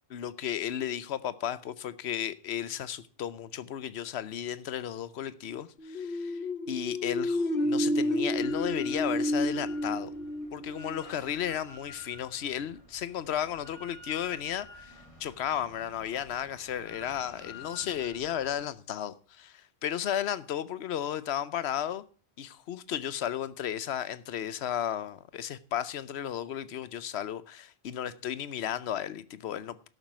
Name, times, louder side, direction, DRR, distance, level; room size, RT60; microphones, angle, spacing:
voice 1, 0.1-6.4 6.7-10.1 10.5-22.0 22.4-29.9, left 10 dB, 80° left, 1.0 m, -34 dB
sound 1, 5.8-11.4, left 1 dB, 60° left, 1.3 m, -30 dB
Drill, 8.3-18.7, left 3 dB, 30° left, 1.9 m, -51 dB
12.0 x 7.4 x 6.0 m
omnidirectional pair, 1.1 m